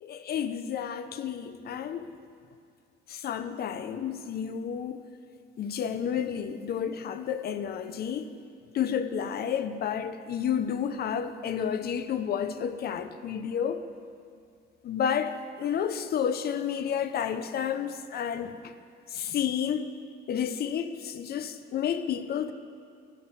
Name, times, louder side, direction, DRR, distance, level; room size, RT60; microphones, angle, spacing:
voice 1, 0.0-2.1 3.1-5.1 5.6-8.3 8.7-13.8 14.8-18.7 19.1-19.9 20.3-22.5, left 8 dB, 55° left, 11 dB, 0.6 m, -31 dB
12.0 x 7.9 x 5.7 m, 2.4 s
cardioid pair, 120°, 20 cm